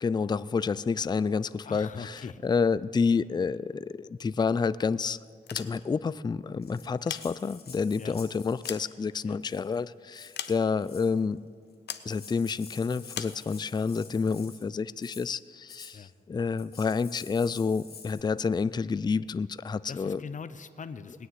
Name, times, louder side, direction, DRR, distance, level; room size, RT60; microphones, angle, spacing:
voice 1, 0.0-5.2 5.5-11.4 12.1-20.2, left 5 dB, 25° left, 17 dB, 0.4 m, -29 dB
voice 2, 1.6-2.4 8.0-8.2 9.2-9.4 15.9-16.1 19.9-21.3, left 5 dB, 45° left, 11 dB, 0.7 m, -41 dB
sound 1, 5.3-6.1 6.8-7.8 8.3-9.6 10.3-11.0 11.9-12.1 13.1-13.4, left 9 dB, 85° left, 0.7 m, -40 dB
Rattle (instrument), 6.6-8.9 9.4-9.8 10.1-11.2 11.7-11.8 12.0-14.7 15.0-15.3 15.7-16.0 16.6-18.2, left 5 dB, 65° left, 2.6 m, -49 dB
20.0 x 6.7 x 9.3 m, 2.1 s
cardioid pair, 70°, 17 cm